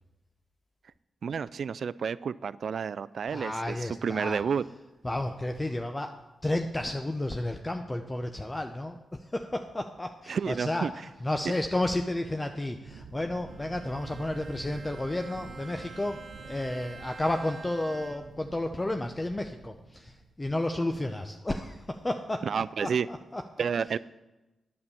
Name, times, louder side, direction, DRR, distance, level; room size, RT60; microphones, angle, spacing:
voice 1, 1.2-3.8 4.0-4.6 10.3-10.9 22.4-23.1 23.6-24.0, right 6 dB, 70° right, 18 dB, 0.3 m, -30 dB
voice 2, 3.3-4.4 5.0-6.1 6.4-23.4, left 1 dB, 20° left, 6 dB, 0.7 m, -32 dB
sound 1, 12.8-20.3, right 4 dB, 85° right, 0.7 m, -49 dB
Bowed string instrument, 13.4-18.5, right 4 dB, 40° right, 1.8 m, -48 dB
9.5 x 7.3 x 6.9 m, 1.0 s
cardioid pair, 55°, 0 cm